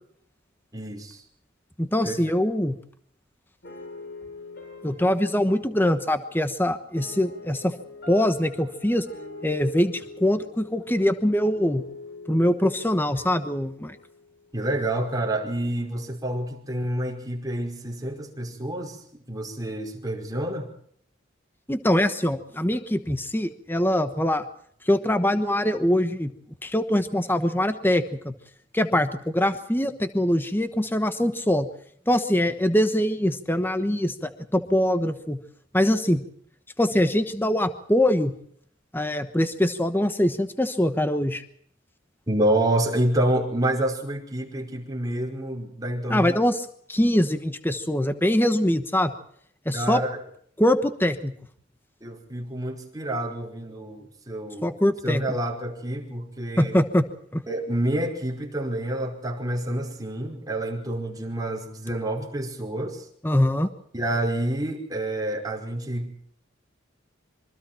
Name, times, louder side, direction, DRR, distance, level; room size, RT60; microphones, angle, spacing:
voice 1, 0.7-1.2 2.0-2.2 14.5-20.7 42.3-46.4 49.7-50.2 52.0-54.7 55.0-56.8 57.5-63.1 63.9-66.1, right 1 dB, 20° right, -1 dB, 5.1 m, -28 dB
voice 2, 1.8-2.7 4.8-7.7 8.1-9.1 9.4-11.8 12.3-14.0 21.7-24.4 24.8-26.3 26.6-28.3 28.7-31.7 32.1-35.4 35.7-36.2 36.8-38.3 38.9-41.4 46.1-49.1 49.6-50.0 50.6-51.3 54.6-55.2 56.6-57.0 57.3-57.4 63.2-63.7, left 1 dB, 10° left, 9 dB, 1.2 m, -23 dB
sound 1, 3.6-14.7, left 3 dB, 55° left, 7.4 m, -44 dB
26.5 x 24.0 x 4.5 m, 0.65 s
head